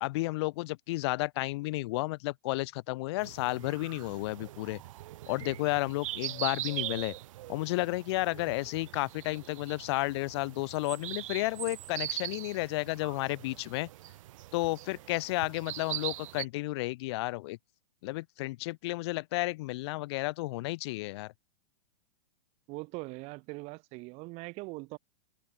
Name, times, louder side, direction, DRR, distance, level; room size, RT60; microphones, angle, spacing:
voice 1, 0.0-4.8 5.3-7.1 7.5-13.9 14.5-17.6 18.0-21.3, left 20 dB, 40° left, 0.8 m, -32 dB
sound 1, 3.2-16.4, right 15 dB, 55° right, 0.7 m, -41 dB
voice 2, 22.7-25.0, right 26 dB, 35° right, 2.8 m, -41 dB
open air
hypercardioid pair, 155°, 20 cm